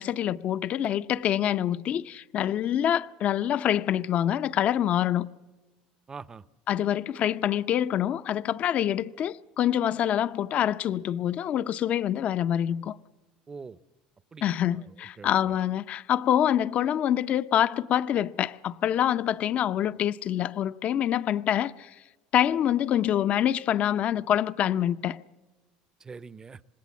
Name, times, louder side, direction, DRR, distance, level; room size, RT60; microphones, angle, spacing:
voice 1, 0.0-5.3 6.7-13.0 14.4-21.9 22.3-25.2, left 10 dB, 45° left, 0.7 m, -26 dB
voice 2, 6.1-6.4 13.5-13.8 14.3-15.5 26.0-26.6, right 5 dB, 20° right, 0.7 m, -44 dB
26.0 x 20.0 x 7.2 m
supercardioid pair, 110°, 3 cm